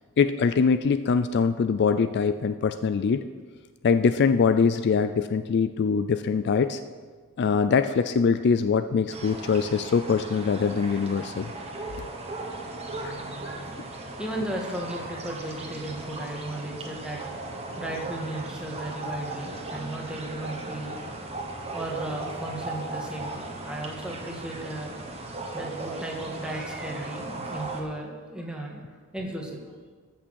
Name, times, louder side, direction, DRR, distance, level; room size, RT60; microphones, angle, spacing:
voice 1, 0.2-3.2 3.8-6.8 7.4-11.5 12.0-12.1 13.0-13.1, left 5 dB, 50° left, 11 dB, 0.3 m, -23 dB
sound 1, 9.1-27.8, right 2 dB, 30° right, 1.3 m, -37 dB
voice 2, 14.0-21.2 21.5-25.0 25.5-28.8 29.1-29.6, right 1 dB, 5° right, -1 dB, 1.6 m, -35 dB
14.0 x 6.1 x 6.3 m, 1.5 s
head